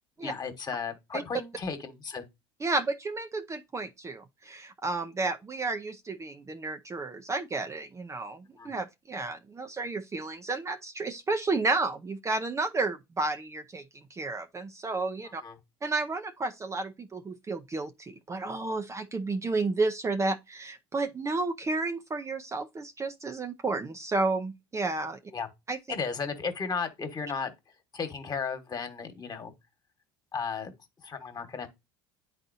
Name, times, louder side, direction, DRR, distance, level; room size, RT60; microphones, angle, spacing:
voice 1, 0.2-2.2 8.6-8.7 15.4-15.6 25.3-25.5 25.9-29.5 30.3-30.7 31.0-31.7, left 5 dB, 35° left, 1.5 m, -35 dB
voice 2, 2.6-15.4 15.8-25.2 25.7-25.8, right 3 dB, 25° right, 0.6 m, -32 dB
9.7 x 4.1 x 2.7 m
hypercardioid pair, 80°, 12 cm